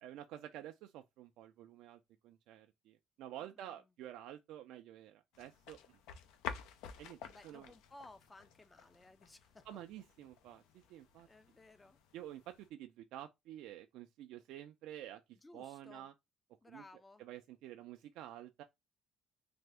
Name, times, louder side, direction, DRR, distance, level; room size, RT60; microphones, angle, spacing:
voice 1, 0.0-6.0 7.0-7.2 7.4-7.7 9.7-11.3 12.1-16.1 16.7-16.8 17.2-18.6, right 12 dB, 80° right, 0.3 m, -50 dB
voice 2, 3.4-3.8 7.2-9.7 11.2-12.0 15.4-16.1 16.6-17.2, left 2 dB, 20° left, 0.4 m, -58 dB
sound 1, 5.3-12.7, left 7 dB, 85° left, 0.5 m, -51 dB
3.3 x 2.1 x 3.3 m
cardioid pair, 100°, 0 cm